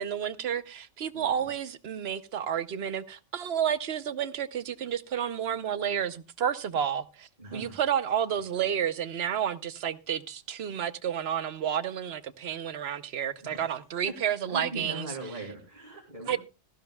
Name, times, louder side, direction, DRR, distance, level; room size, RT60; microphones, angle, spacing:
voice 1, 0.0-15.1 16.3-16.4, right 9 dB, 65° right, 1.0 m, -31 dB
voice 2, 1.1-1.5 7.4-7.8 13.4-13.7 14.0-14.1 14.5-16.4, right 2 dB, 40° right, 2.4 m, -40 dB
17.0 x 14.5 x 2.3 m
omnidirectional pair, 1.2 m